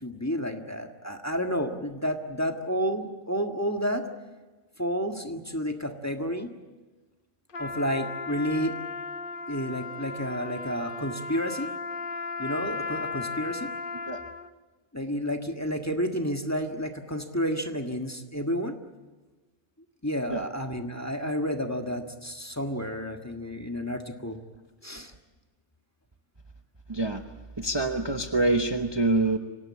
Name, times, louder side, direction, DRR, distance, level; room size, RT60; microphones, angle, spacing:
voice 1, 0.0-4.1 4.8-6.5 7.6-8.7 9.5-11.7 12.4-13.7 14.9-18.8 20.0-24.4 24.8-25.1, equal, 15° left, 5 dB, 1.6 m, -30 dB
Trumpet, 7.5-14.5, left 4 dB, 50° left, 1.0 m, -35 dB
voice 2, 26.9-27.2 27.6-29.4, right 2 dB, 25° right, 5 dB, 1.1 m, -25 dB
25.5 x 18.0 x 8.7 m, 1.3 s
omnidirectional pair, 1.3 m